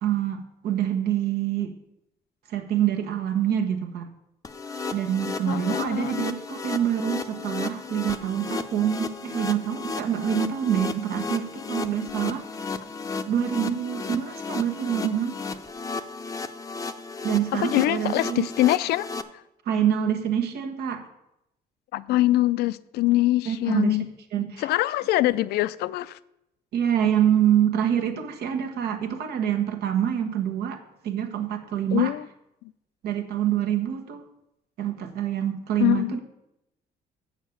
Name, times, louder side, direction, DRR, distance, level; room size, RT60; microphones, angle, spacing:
voice 1, 0.0-1.7 2.5-4.1 4.9-12.7 13.3-15.6 17.2-18.5 19.7-21.1 23.4-24.0 24.3-24.7 26.7-32.1 33.0-34.2 34.8-36.2, right 10 dB, 75° right, 1.2 m, -26 dB
sound 1, 4.4-19.2, left 4 dB, 20° left, 0.6 m, -34 dB
voice 2, 5.5-6.3 11.5-11.6 13.1-13.2 17.5-19.1 21.9-24.1 24.6-26.2 31.9-32.3 35.8-36.2, left 16 dB, 75° left, 0.4 m, -24 dB
7.9 x 6.5 x 6.9 m
cardioid pair, 110°, 17 cm